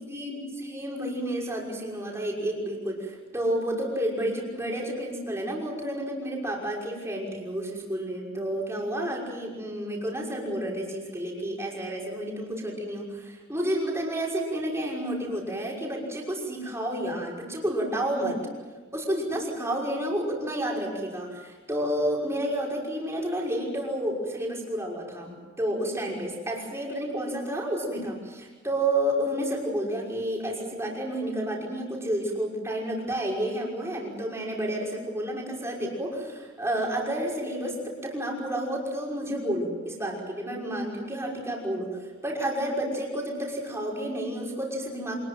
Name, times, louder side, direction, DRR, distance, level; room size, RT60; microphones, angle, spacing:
voice 1, 0.0-18.4 18.9-41.9 42.2-45.1, right 1 dB, 15° right, -2 dB, 5.8 m, -30 dB
26.5 x 20.5 x 7.8 m, 1.3 s
head